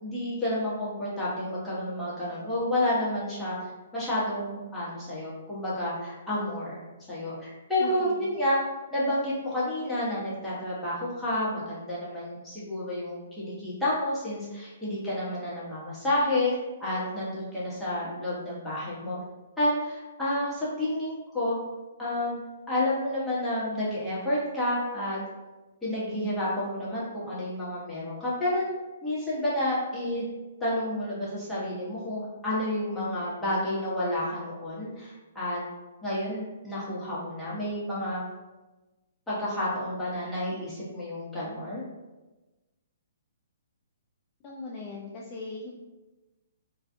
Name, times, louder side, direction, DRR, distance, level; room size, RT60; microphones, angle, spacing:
voice 1, 0.0-3.6 3.9-6.8 7.1-8.6 8.9-19.2 19.6-21.6 22.0-22.4 22.7-25.2 25.8-28.6 29.0-30.2 30.6-35.6 36.0-38.2 39.3-41.8, left 1 dB, 5° left, -10 dB, 1.0 m, -30 dB
voice 2, 7.8-8.2 44.4-45.7, left 3 dB, 30° left, -3 dB, 0.3 m, -39 dB
2.4 x 2.3 x 2.5 m, 1.1 s
hypercardioid pair, 140°, 0 cm